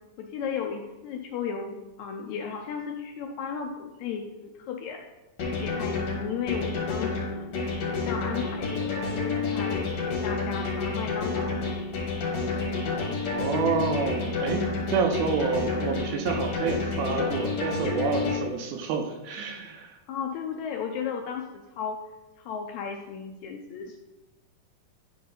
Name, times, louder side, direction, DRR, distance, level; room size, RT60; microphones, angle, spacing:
voice 1, 0.2-5.0 5.5-7.5 7.8-11.7 20.1-22.0 22.4-24.0, left 6 dB, 80° left, 3 dB, 1.7 m, -35 dB
sound 1, 5.4-18.4, left 4 dB, 60° left, 2.6 m, -29 dB
voice 2, 13.3-14.6 14.9-19.9, right 5 dB, 80° right, 4 dB, 2.0 m, -28 dB
10.0 x 3.8 x 3.9 m, 1.0 s
omnidirectional pair, 3.7 m